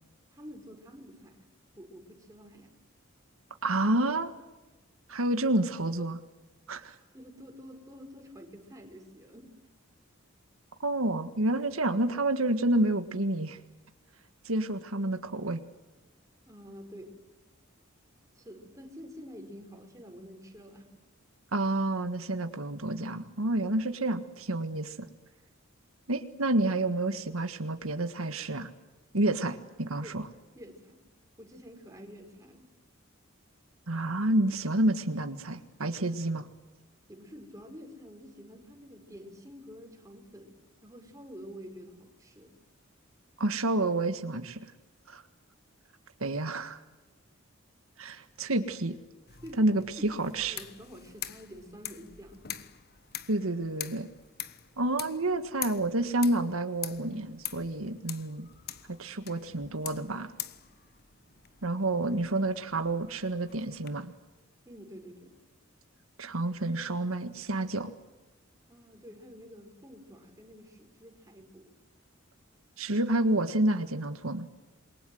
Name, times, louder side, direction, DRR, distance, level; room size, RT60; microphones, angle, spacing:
voice 1, 0.3-1.5 1.7-2.7 7.1-9.5 16.5-17.2 18.3-20.9 30.0-30.3 30.5-31.0 31.4-32.7 37.1-40.5 40.8-42.5 49.4-50.1 50.4-52.5 64.6-65.3 68.7-71.7, equal, 15° right, 2 dB, 5.0 m, -48 dB
voice 2, 3.6-4.3 5.1-6.2 6.7-7.0 10.8-13.6 14.4-15.6 21.5-25.1 26.1-28.7 29.1-30.3 33.9-36.5 43.4-44.6 45.1-45.2 46.2-46.8 48.0-48.9 49.6-50.6 53.3-54.1 54.8-58.5 59.0-60.3 61.6-64.1 66.2-67.9 72.8-74.5, right 2 dB, 90° right, 8 dB, 1.7 m, -29 dB
sound 1, 49.3-63.9, left 11 dB, 50° left, 1.4 m, -44 dB
28.0 x 22.5 x 7.9 m, 1.1 s
head